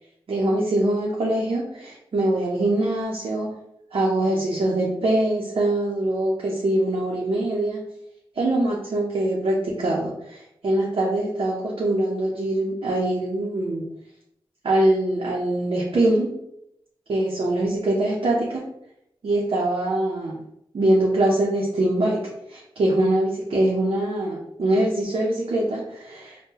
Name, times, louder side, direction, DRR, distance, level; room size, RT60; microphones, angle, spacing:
voice 1, 0.3-3.6 3.9-7.8 8.4-13.8 14.6-16.3 17.1-18.6 19.2-20.4 20.7-26.4, right 1 dB, 70° right, -4 dB, 0.6 m, -23 dB
3.6 x 2.2 x 2.8 m, 0.77 s
cardioid pair, 55°, 10 cm